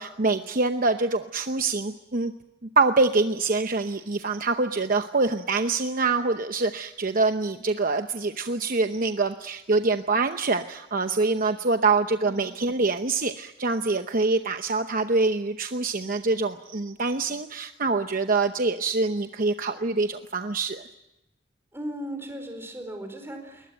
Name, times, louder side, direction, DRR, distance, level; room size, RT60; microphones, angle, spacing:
voice 1, 0.0-2.3 2.8-20.8, right 3 dB, 45° right, 7 dB, 0.9 m, -25 dB
voice 2, 12.2-12.8 21.7-23.7, right 1 dB, 15° right, 5 dB, 4.7 m, -37 dB
22.0 x 20.5 x 9.1 m, 0.93 s
head